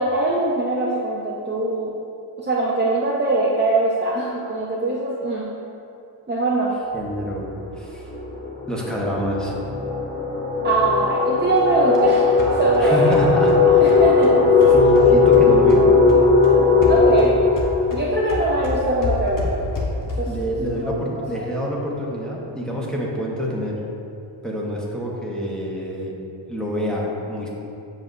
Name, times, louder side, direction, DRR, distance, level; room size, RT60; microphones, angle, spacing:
voice 1, 0.0-1.9 2.4-5.5 6.3-6.8 10.6-13.1 13.8-14.8 16.9-17.4 17.9-19.6 20.2-20.3 20.8-21.6, right 2 dB, 25° right, -4 dB, 0.6 m, -22 dB
voice 2, 6.9-7.5 7.8-8.1 8.7-9.5 12.8-14.4 14.7-15.9 20.2-23.8 24.4-26.1 26.5-27.5, equal, ahead, -5 dB, 1.0 m, -27 dB
sound 1, 7.0-7.3 7.6-19.1, left 4 dB, 25° left, 1.3 m, -18 dB
sound 2, 11.6-15.8 16.1-20.5, left 2 dB, 40° left, 1.0 m, -30 dB
7.6 x 6.1 x 2.6 m, 2.7 s
wide cardioid pair, 125°, 48 cm